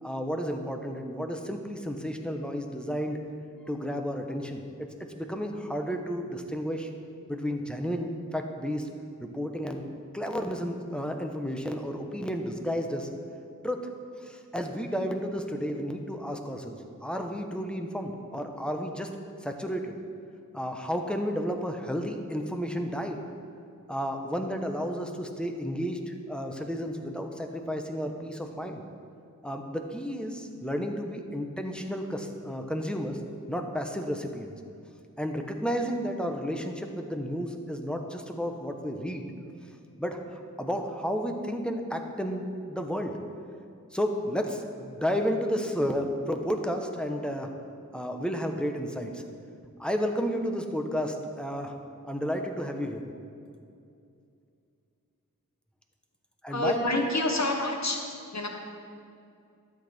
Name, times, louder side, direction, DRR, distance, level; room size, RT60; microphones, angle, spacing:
voice 1, 0.0-3.2 3.7-4.9 5.1-6.9 7.3-8.9 9.2-9.8 10.1-13.1 13.6-13.9 14.2-19.1 19.4-20.0 20.5-23.2 23.9-28.8 29.4-33.2 33.5-34.6 35.2-39.3 40.0-43.2 43.9-47.5 47.9-49.2 49.8-51.7 52.0-53.0 56.4-56.8, equal, 5° left, 4 dB, 1.0 m, -32 dB
voice 2, 56.5-58.0 58.3-58.5, left 2 dB, 55° left, 2 dB, 1.3 m, -27 dB
12.5 x 8.4 x 4.4 m, 2.5 s
wide cardioid pair, 55°, 33 cm